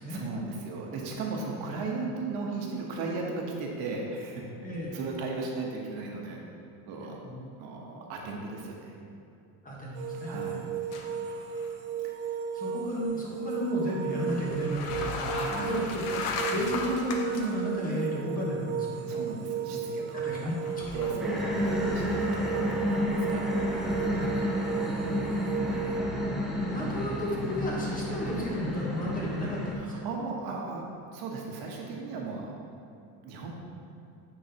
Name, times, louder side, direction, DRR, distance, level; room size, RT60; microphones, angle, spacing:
voice 1, 0.0-4.4 4.9-6.4 6.9-7.1 7.6-8.9 10.3-10.6 12.0-12.3 15.3-16.0 19.1-23.6 24.6-25.0 29.8-32.5 33.2-33.5, right 3 dB, 65° right, -1 dB, 1.1 m, -37 dB
voice 2, 4.6-4.9 7.2-7.4 9.6-10.5 12.5-16.0 16.5-19.0 20.1-20.5 20.9-21.0 24.0-24.4 26.7-29.7, equal, 20° left, -4 dB, 1.1 m, -33 dB
sound 1, 9.9-26.0, right 7 dB, 45° right, 0.7 m, -35 dB
sound 2, 10.9-11.3 11.6-11.7 14.3-17.5 18.1-18.2 20.6-21.1, left 4 dB, 85° left, 0.8 m, -35 dB
sound 3, 21.2-29.8, equal, ahead, 0.5 m, -30 dB
9.2 x 3.9 x 2.8 m, 2.7 s
cardioid pair, 135°, 41 cm